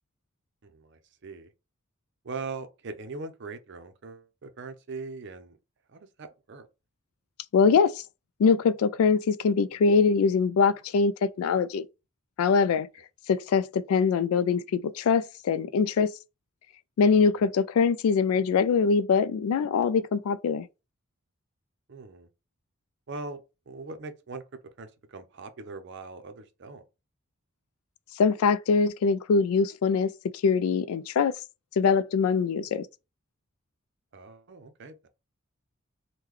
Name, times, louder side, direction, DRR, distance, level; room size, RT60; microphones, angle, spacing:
voice 1, 0.6-1.5 2.2-5.6 5.9-6.7 17.1-17.5 21.9-22.3 23.1-24.4 24.8-26.8 34.1-35.1, right 3 dB, 55° right, 0.5 m, -41 dB
voice 2, 7.5-8.0 8.4-11.8 12.4-12.9 13.3-16.1 17.0-20.7 28.2-30.1 30.4-31.3 31.8-32.9, left 5 dB, 80° left, 0.3 m, -23 dB
3.7 x 2.2 x 3.0 m
head